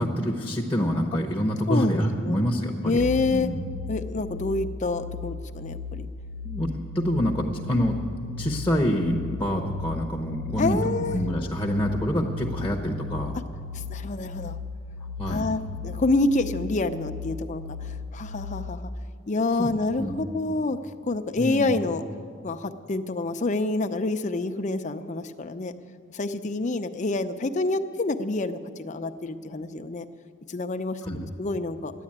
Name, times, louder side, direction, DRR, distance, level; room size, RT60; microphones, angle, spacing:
voice 1, 0.0-3.0 3.3-3.6 6.4-8.0 8.4-10.8 11.1-13.4 15.2-15.5 19.6-19.7 20.0-20.2 21.4-21.8 31.0-31.2, equal, 10° left, 1 dB, 0.9 m, -26 dB
voice 2, 1.7-2.4 2.8-3.5 3.9-6.1 10.6-11.2 13.3-13.4 13.7-14.6 15.3-18.9 19.3-20.8 21.1-22.0 22.4-25.7 26.1-30.1 30.5-31.9, left 2 dB, 35° left, 7 dB, 0.6 m, -27 dB
sound 1, 3.0-18.8, left 4 dB, 45° right, 0.7 m, -37 dB
13.0 x 10.0 x 8.7 m, 2.2 s
head